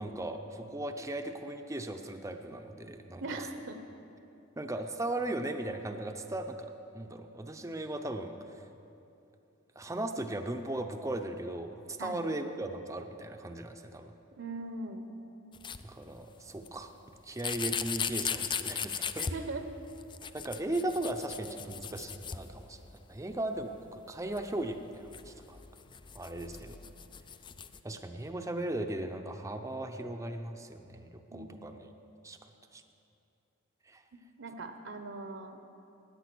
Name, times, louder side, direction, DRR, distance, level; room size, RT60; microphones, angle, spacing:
voice 1, 0.0-3.5 4.6-8.7 9.8-14.1 15.8-16.9 17.2-19.3 20.3-25.6 26.1-26.8 27.8-31.9 32.2-32.8 33.9-34.0, right 1 dB, 15° right, 5 dB, 0.6 m, -37 dB
voice 2, 3.2-3.7 12.0-12.2 14.4-15.0 19.2-19.6 31.3-31.6 34.4-35.6, right 2 dB, 65° right, 7 dB, 0.9 m, -40 dB
sound 1, 15.5-15.8 16.7-16.8 17.4-19.4 19.9-23.0 23.3-23.4 23.6-23.7 24.3-27.8, left 7 dB, 25° left, 0.4 m, -38 dB
16.5 x 9.9 x 6.1 m, 2.7 s
head